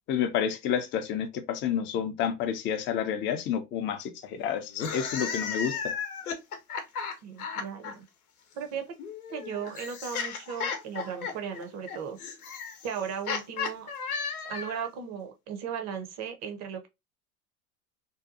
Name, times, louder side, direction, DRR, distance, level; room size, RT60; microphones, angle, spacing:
voice 1, 0.1-5.9, left 8 dB, 30° left, 0.4 m, -30 dB
sound 1, 4.7-7.9 9.0-14.9, left 6 dB, 80° left, 0.7 m, -35 dB
voice 2, 7.2-8.0 8.5-8.8 9.3-12.2 12.8-13.9 14.4-16.9, right 7 dB, 35° right, 0.7 m, -36 dB
2.7 x 2.2 x 2.4 m
hypercardioid pair, 80°, 44 cm